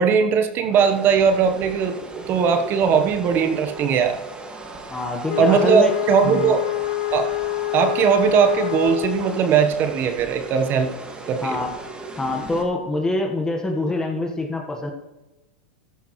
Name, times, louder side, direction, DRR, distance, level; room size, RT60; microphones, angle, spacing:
voice 1, 0.0-4.2 5.4-6.6 7.1-7.3 7.7-10.9 11.3-11.6, right 7 dB, 40° right, 7 dB, 1.1 m, -19 dB
sound 1, 0.6-12.6, right 2 dB, 15° right, 2.0 m, -37 dB
voice 2, 4.9-5.9 6.2-6.5 11.4-11.7 12.2-14.9, left 2 dB, 10° left, 2 dB, 1.5 m, -25 dB
Wind instrument woodwind instrument, 5.3-9.5, left 18 dB, 65° left, 0.6 m, -26 dB
14.0 x 11.5 x 3.2 m, 1.0 s
hypercardioid pair, 110°, 6 cm